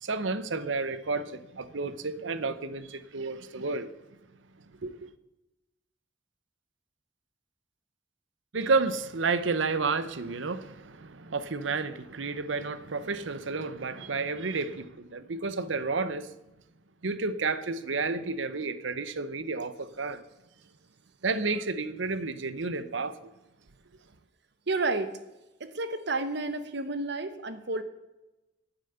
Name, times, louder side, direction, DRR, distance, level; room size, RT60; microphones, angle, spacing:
voice 1, 0.0-3.9 4.8-5.0 8.5-16.3 17.0-20.2 21.2-23.3, right 4 dB, 85° right, 0.8 m, -31 dB
voice 2, 24.7-25.2 25.6-27.8, right 3 dB, 65° right, 1.2 m, -31 dB
9.3 x 9.1 x 8.0 m
head